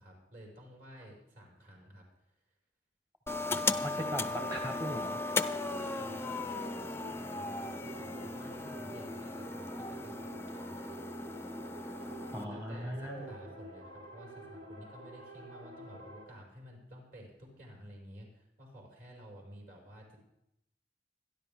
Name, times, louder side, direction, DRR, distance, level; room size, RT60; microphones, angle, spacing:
voice 1, 0.0-2.3 5.6-10.9 12.3-20.2, equal, 55° right, -2 dB, 6.1 m, -52 dB
sound 1, 3.3-12.4, left 3 dB, 15° left, 0.5 m, -37 dB
voice 2, 3.8-5.2 12.3-13.3, equal, 20° right, 2 dB, 1.3 m, -39 dB
sound 2, 4.4-16.2, right 1 dB, 90° right, 3.6 m, -48 dB
26.5 x 11.0 x 3.8 m, 0.82 s
head